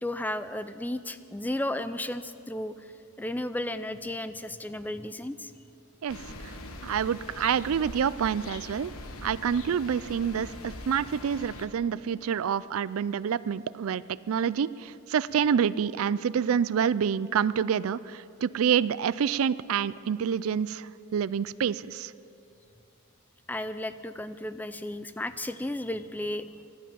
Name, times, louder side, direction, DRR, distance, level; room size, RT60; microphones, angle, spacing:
voice 1, 0.0-2.9 3.2-5.5 23.5-26.7, left 1 dB, 10° left, 12 dB, 0.4 m, -34 dB
voice 2, 6.0-6.5 6.8-8.9 9.2-22.1, right 7 dB, 75° right, 18 dB, 0.4 m, -27 dB
sound 1, 6.1-11.7, left 2 dB, 85° left, 1.3 m, -42 dB
15.5 x 12.0 x 7.4 m, 2.6 s
head